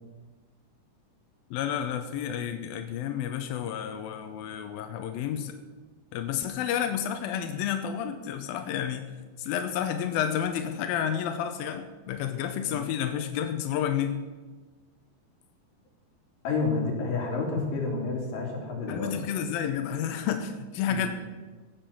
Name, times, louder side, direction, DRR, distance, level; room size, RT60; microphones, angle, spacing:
voice 1, 1.5-5.6 6.1-9.1 9.4-14.2 18.9-21.1, left 9 dB, 80° left, 7 dB, 2.2 m, -30 dB
voice 2, 16.4-19.2 20.9-21.1, left 3 dB, 55° left, -1 dB, 4.2 m, -30 dB
15.5 x 7.3 x 7.1 m, 1.3 s
omnidirectional pair, 5.1 m